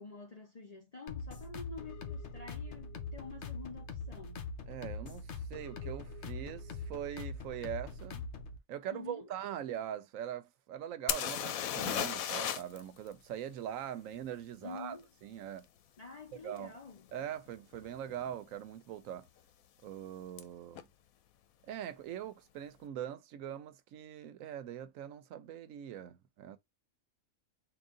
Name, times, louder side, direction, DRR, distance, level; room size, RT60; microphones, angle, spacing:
voice 1, 0.0-4.6 8.9-9.3 14.6-15.1 16.0-17.1, left 4 dB, 35° left, 0.7 m, -48 dB
sound 1, 1.1-8.6, left 4 dB, 60° left, 1.0 m, -43 dB
voice 2, 4.7-8.2 8.7-15.0 15.2-15.7 16.4-16.7 17.1-19.3 19.8-20.9 21.7-26.6, right 10 dB, 75° right, 1.0 m, -42 dB
sound 2, 11.1-12.8 13.1-13.2 16.6-16.7 17.3-17.5 17.7-18.3 20.4-20.5 20.7-20.8, left 10 dB, 85° left, 1.1 m, -34 dB
3.9 x 2.5 x 3.6 m
omnidirectional pair, 1.4 m